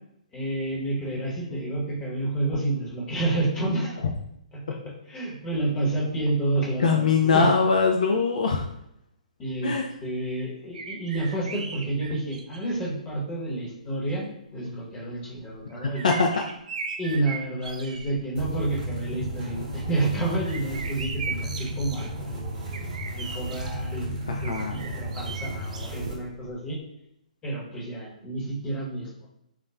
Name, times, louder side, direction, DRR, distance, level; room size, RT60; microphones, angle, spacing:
voice 1, 0.3-4.0 4.5-4.8 5.1-7.5 9.4-16.1 17.0-26.8 27.4-29.3, right 2 dB, 20° left, -5 dB, 1.0 m, -30 dB
voice 2, 6.8-8.6 9.6-9.8 16.0-16.3 24.3-24.8, left 5 dB, 65° left, 2 dB, 0.3 m, -22 dB
sound 1, 10.7-12.8 13.6-13.7 15.3-18.2 18.6-19.0 19.4-23.8 24.4-26.5 26.8-26.9, right 5 dB, 60° right, 0.3 m, -38 dB
sound 2, 18.3-26.1, right 1 dB, 30° right, 1.0 m, -34 dB
2.3 x 2.0 x 3.2 m, 0.77 s
figure-of-eight pair, 125°, 4 cm